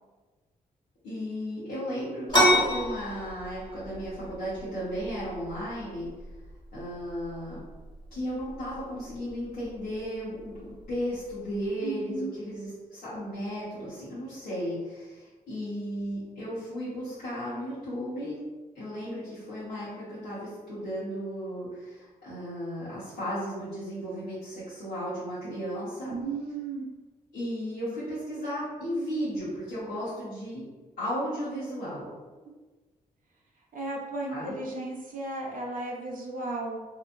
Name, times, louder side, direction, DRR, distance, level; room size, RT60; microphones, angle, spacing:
voice 1, 1.0-6.1 6.7-7.6 8.1-18.4 18.7-26.1 27.3-30.6 31.0-32.1 34.3-34.6, equal, 75° left, -12 dB, 1.1 m, -35 dB
sound 1, 2.3-11.7, equal, 25° left, 1.4 m, -31 dB
voice 2, 11.8-12.4 26.1-26.9 32.5-32.6 33.7-36.8, right 2 dB, 60° right, -2 dB, 0.6 m, -34 dB
2.8 x 2.5 x 2.5 m, 1.3 s
supercardioid pair, 50°, 16 cm